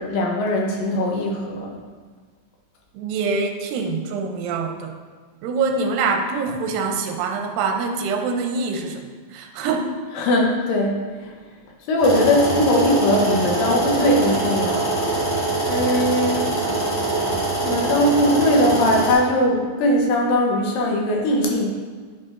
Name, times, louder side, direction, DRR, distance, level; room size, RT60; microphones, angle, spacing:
voice 1, 0.0-1.8 10.2-11.3 11.9-14.8 15.7-16.5 17.6-21.7, left 1 dB, 75° left, 0 dB, 2.5 m, -20 dB
voice 2, 2.9-4.9 5.4-9.9, right 4 dB, 80° right, 4 dB, 2.3 m, -25 dB
sound 1, 12.0-19.1, right 2 dB, 45° left, 2.4 m, -23 dB
8.8 x 4.8 x 2.4 m, 1.5 s
omnidirectional pair, 4.2 m